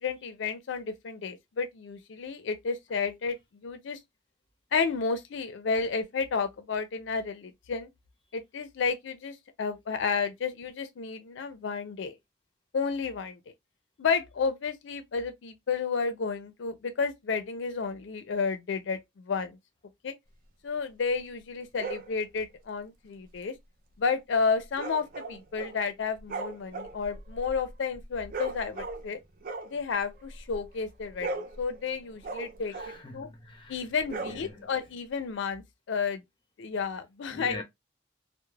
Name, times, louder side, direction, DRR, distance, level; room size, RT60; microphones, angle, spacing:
voice 1, 0.0-3.4 3.6-4.0 4.7-7.9 8.3-12.2 12.7-13.4 14.0-19.6 20.0-20.1 20.6-23.5 24.0-29.2 29.7-31.3 31.6-32.7 33.1-33.3 33.7-36.2 36.6-37.6, left 5 dB, 75° left, 0.4 m, -31 dB
sound 1, 21.8-22.1 24.7-25.8 26.1-29.1 29.4-30.7 31.0-33.1 34.0-34.8, right 3 dB, 45° right, 0.4 m, -38 dB
voice 2, 32.7-33.7 34.2-34.7 37.3-37.6, left 2 dB, 25° left, 0.6 m, -43 dB
2.2 x 2.0 x 3.1 m
head